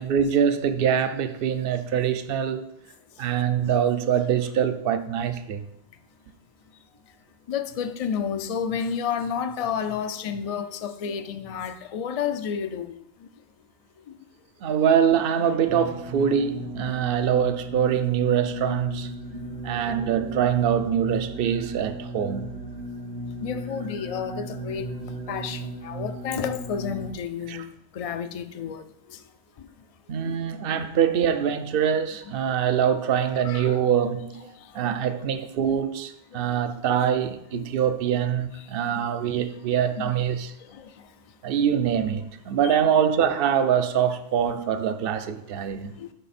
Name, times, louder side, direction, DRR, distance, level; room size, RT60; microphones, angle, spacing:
voice 1, 0.0-2.7 3.2-5.7 14.6-19.1 19.6-22.6 27.5-27.7 30.1-34.5 34.7-40.5 41.4-46.0, right 8 dB, 65° right, 0.8 m, -24 dB
voice 2, 7.5-13.3 14.1-14.2 19.3-19.4 23.4-24.9 25.3-27.7 27.9-29.2 29.6-29.7 30.2-30.4 30.7-30.9 33.2-33.9 34.5-35.2 36.3-36.7 37.0-37.1 37.5-37.7 38.8-39.0 39.3-39.5 40.0-40.1 40.6-41.1 42.6-42.8 46.0-46.1, left 7 dB, 50° left, 0.5 m, -32 dB
sound 1, 15.6-27.1, right 1 dB, 80° right, 1.1 m, -36 dB
10.5 x 4.2 x 4.2 m
omnidirectional pair, 1.1 m